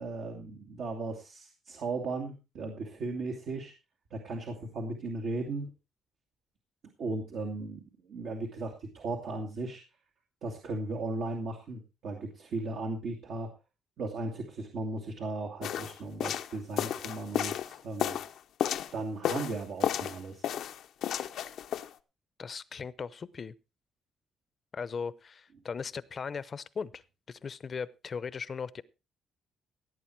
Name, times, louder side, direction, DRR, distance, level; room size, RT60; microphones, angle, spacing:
voice 1, 0.0-3.7 4.1-5.7 7.0-9.8 10.4-13.5 14.0-18.2 18.9-20.5, right 2 dB, 70° right, 2 dB, 2.4 m, -36 dB
sound 1, 15.6-18.9 19.2-20.2 20.4-21.9, left 10 dB, 80° left, 0.7 m, -32 dB
voice 2, 22.4-23.5 24.7-27.0 27.3-28.8, left 5 dB, 45° left, 18 dB, 0.7 m, -38 dB
17.0 x 8.2 x 4.5 m, 0.30 s
cardioid pair, 90°, 0 cm